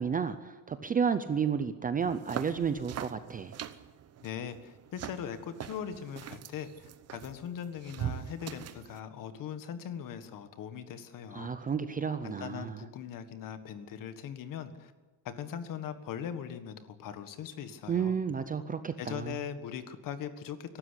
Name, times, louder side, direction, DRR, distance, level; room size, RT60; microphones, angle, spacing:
voice 1, 0.0-3.5 11.3-12.8 17.9-19.3, right 6 dB, 20° right, 11 dB, 0.6 m, -31 dB
sound 1, 2.0-9.0, right 10 dB, 35° right, 0.9 m, -42 dB
voice 2, 4.2-11.5 12.2-14.9 15.2-18.1 19.0-20.8, left 8 dB, 45° left, 11 dB, 1.7 m, -40 dB
23.0 x 12.5 x 10.0 m, 1.3 s
cardioid pair, 175°, 45 cm